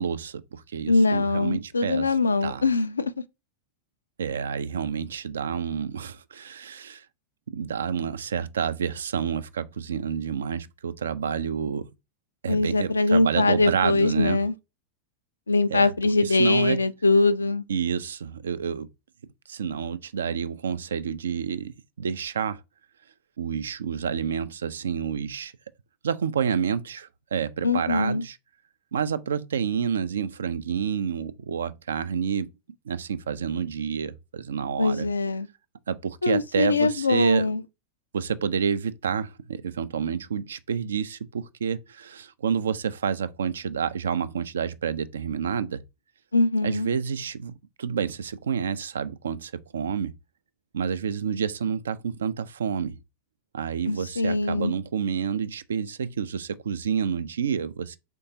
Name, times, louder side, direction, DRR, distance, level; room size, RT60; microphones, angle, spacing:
voice 1, 0.0-2.1 2.4-2.7 4.2-7.0 7.5-11.9 12.4-14.4 15.7-15.9 16.2-16.8 17.7-18.9 19.5-22.6 23.4-25.5 26.0-28.4 28.9-32.5 32.9-35.1 35.9-37.5 38.1-45.8 46.6-50.1 50.7-53.0 53.5-58.0, right 7 dB, 65° right, 0.3 m, -29 dB
voice 2, 0.9-3.1 12.5-14.5 15.5-17.6 27.6-28.2 34.8-35.5 36.2-37.6 46.3-46.9 53.9-54.7, left 3 dB, 75° left, 0.3 m, -22 dB
4.4 x 3.5 x 2.7 m
figure-of-eight pair, 90°, 0 cm